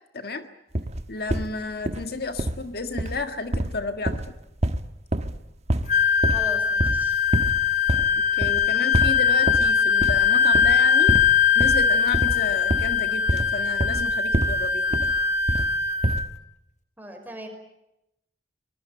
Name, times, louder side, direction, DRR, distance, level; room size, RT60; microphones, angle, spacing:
voice 1, 0.1-0.5 1.1-4.2 8.2-11.2 11.5-15.1, left 3 dB, 60° left, 8 dB, 1.6 m, -32 dB
sound 1, 0.7-1.5 1.8-2.1 2.4-2.7 3.0-3.2 3.5-5.4 5.7-5.9 6.2-6.5 6.8-7.0 7.3-7.6 7.9-8.1 8.4-8.7 8.9-9.7 10.0-10.3 10.5-10.8 11.1-11.3 11.6-14.6 14.9-15.7 16.0-16.3, right 1 dB, 40° right, 1.2 m, -26 dB
Wind instrument woodwind instrument, 5.9-16.3, left 6 dB, 45° left, 1.2 m, -21 dB
voice 2, 6.3-7.2 17.0-17.5, right 1 dB, 10° right, 5 dB, 5.1 m, -38 dB
24.5 x 20.5 x 9.0 m, 0.85 s
head